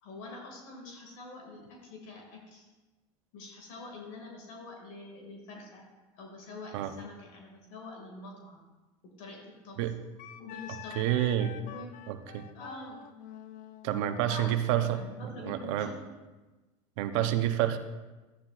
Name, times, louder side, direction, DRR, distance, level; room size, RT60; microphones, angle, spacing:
voice 1, 0.0-2.7 3.3-5.8 6.1-8.6 9.0-9.8 10.4-11.0 11.6-13.0 14.2-16.1, left 2 dB, 75° left, 0 dB, 2.1 m, -46 dB
Wind instrument woodwind instrument, 10.2-15.6, left 11 dB, 55° left, 0.6 m, -48 dB
voice 2, 11.0-11.5 12.1-12.4 13.8-15.0 15.4-15.9 17.0-17.8, right 12 dB, 70° right, 8 dB, 0.8 m, -28 dB
13.0 x 9.7 x 2.4 m, 1.2 s
supercardioid pair, 100°, 16 cm